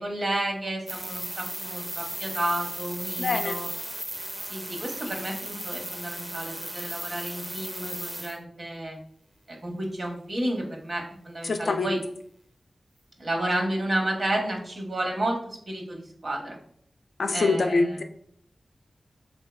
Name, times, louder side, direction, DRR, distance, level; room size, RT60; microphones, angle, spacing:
voice 1, 0.0-3.7 4.5-9.0 9.5-12.0 13.2-16.6 17.3-18.0, right 1 dB, 65° right, 0 dB, 0.8 m, -31 dB
sound 1, 0.9-8.4, right 1 dB, 20° right, 0.4 m, -36 dB
voice 2, 3.2-3.6 11.4-11.9 17.2-18.0, left 3 dB, 90° left, 6 dB, 0.3 m, -25 dB
3.4 x 2.7 x 2.2 m, 0.64 s
wide cardioid pair, 85°, 0 cm